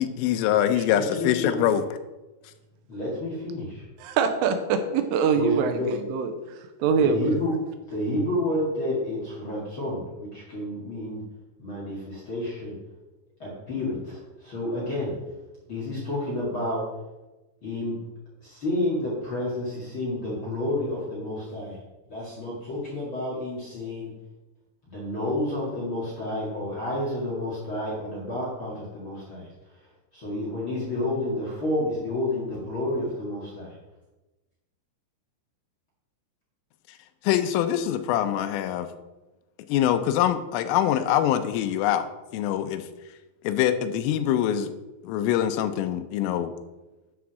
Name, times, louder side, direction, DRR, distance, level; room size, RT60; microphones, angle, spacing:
voice 1, 0.0-1.8 37.2-38.9 39.7-42.8 43.4-44.7 45.0-46.5, left 11 dB, 85° left, 10 dB, 3.2 m, -24 dB
voice 2, 0.8-1.6 2.9-3.8 5.3-5.9 7.0-7.6 7.9-11.2 11.6-12.8 13.4-15.2 15.7-16.8 17.6-18.0 18.4-21.8 22.1-24.1 24.9-29.5 30.1-33.7, left 1 dB, 55° left, -6 dB, 1.4 m, -30 dB
voice 3, 4.0-7.3, right 6 dB, 85° right, 8 dB, 3.3 m, -24 dB
8.3 x 6.0 x 6.2 m, 1.1 s
omnidirectional pair, 5.8 m